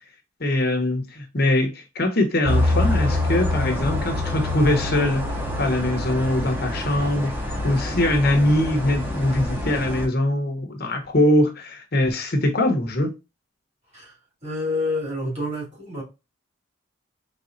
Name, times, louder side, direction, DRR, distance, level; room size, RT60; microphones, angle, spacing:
voice 1, 0.4-5.2 5.6-13.1, left 1 dB, 50° left, 0.9 m, -22 dB
sound 1, 2.4-10.1, left 1 dB, 10° right, 0.9 m, -26 dB
voice 2, 14.4-16.0, left 2 dB, 30° right, 2.7 m, -28 dB
4.2 x 3.5 x 2.6 m
head